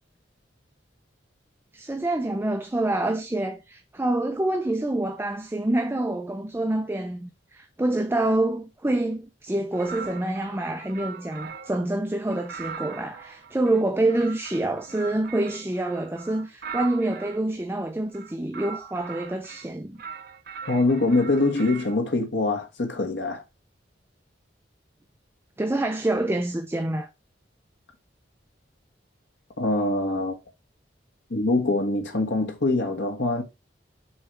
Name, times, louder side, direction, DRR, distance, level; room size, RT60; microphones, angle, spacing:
voice 1, 1.7-20.0 25.6-27.1, right 2 dB, 15° right, 0.5 m, -27 dB
sound 1, 9.7-11.8 12.3-17.4 18.1-19.7 20.0-22.0, right 6 dB, 55° right, 0.7 m, -40 dB
voice 2, 20.6-23.4 29.6-30.4 31.3-33.4, left 2 dB, 70° left, 1.4 m, -24 dB
7.1 x 3.2 x 4.6 m
head